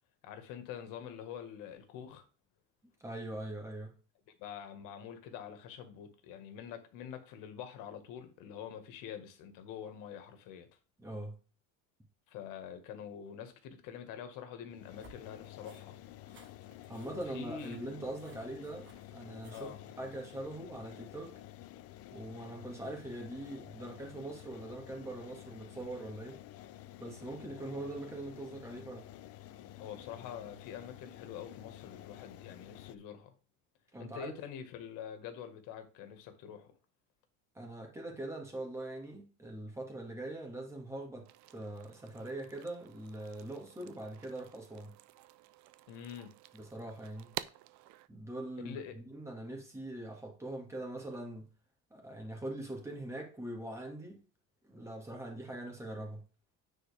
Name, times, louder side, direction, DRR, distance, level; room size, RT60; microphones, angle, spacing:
voice 1, 0.2-2.2 4.4-10.7 12.3-16.0 17.1-17.9 19.5-19.8 29.8-33.3 34.0-36.7 45.9-46.3 48.6-49.0, left 8 dB, 75° left, 1.8 m, -46 dB
voice 2, 3.0-3.9 11.0-11.4 16.9-19.7 20.0-21.3 22.1-26.4 27.0-29.1 33.9-34.4 37.5-44.9 46.5-47.3 48.1-51.5 51.9-54.2 54.7-56.2, right 1 dB, 10° right, 2.2 m, -42 dB
sound 1, 14.7-33.0, left 13 dB, 45° left, 0.6 m, -51 dB
sound 2, 15.0-19.9, right 3 dB, 35° right, 1.8 m, -61 dB
sound 3, 41.2-48.1, right 15 dB, 60° right, 0.6 m, -50 dB
9.4 x 4.5 x 3.6 m
cardioid pair, 160°, 33 cm